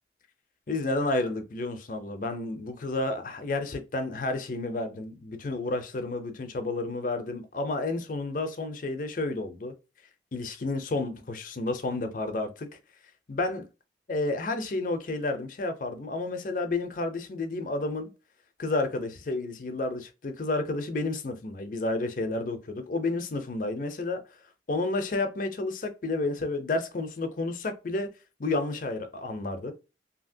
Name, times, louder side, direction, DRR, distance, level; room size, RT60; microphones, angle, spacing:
voice 1, 0.7-9.7 10.3-12.7 13.3-13.7 14.1-18.1 18.6-24.2 24.7-28.1 28.4-29.7, left 2 dB, 50° left, 0.5 m, -31 dB
2.8 x 2.7 x 2.6 m
head